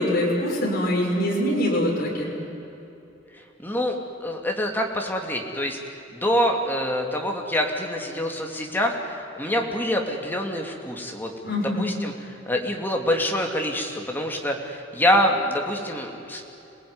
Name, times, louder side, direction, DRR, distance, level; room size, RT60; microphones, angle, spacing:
voice 1, 0.0-2.3 11.4-11.8, left 1 dB, 50° left, -2 dB, 6.1 m, -23 dB
voice 2, 3.6-5.8 6.1-11.3 11.6-16.4, equal, 10° left, 1 dB, 2.8 m, -26 dB
27.0 x 20.0 x 9.8 m, 2.9 s
head